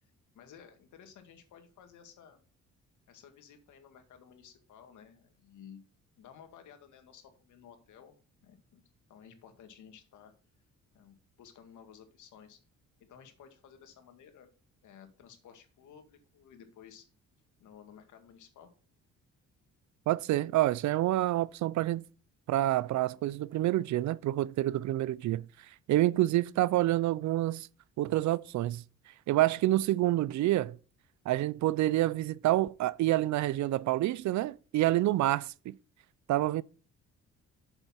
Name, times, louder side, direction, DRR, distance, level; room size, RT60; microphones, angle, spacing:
voice 1, 0.0-2.4 3.1-5.8 6.2-8.2 8.4-8.8 9.1-10.3 10.9-12.6 13.1-14.5 14.8-17.1 17.6-18.7, left 8 dB, 75° left, 2.0 m, -55 dB
voice 2, 20.1-22.0 22.5-25.5 25.9-27.7 28.0-28.8 29.3-30.8 31.3-35.8 36.3-36.6, right 15 dB, 70° right, 0.5 m, -28 dB
8.1 x 6.9 x 4.3 m
cardioid pair, 90°, 30 cm